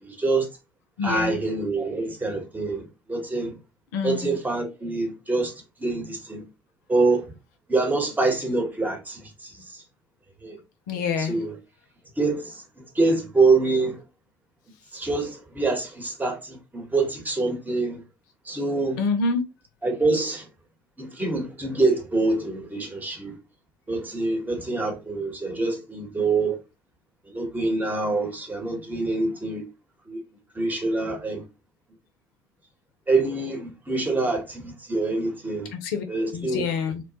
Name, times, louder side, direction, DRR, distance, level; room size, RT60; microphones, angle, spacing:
voice 1, 0.0-0.5 1.0-3.5 4.0-5.5 5.8-6.4 6.9-7.2 7.7-9.8 10.4-10.6 11.2-11.6 12.2-12.6 12.9-14.0 14.9-18.0 18.5-19.0 19.8-20.5 21.0-23.3 23.9-26.6 27.3-29.6 30.1-30.2 30.5-31.4 33.1-35.7 36.1-36.6, right 3 dB, 15° right, 1.0 m, -25 dB
voice 2, 1.0-1.4 3.9-4.4 10.9-11.4 19.0-19.4 35.7-36.0 36.3-37.0, left 4 dB, 65° left, 0.5 m, -26 dB
2.9 x 2.2 x 2.8 m
figure-of-eight pair, 60°, 11 cm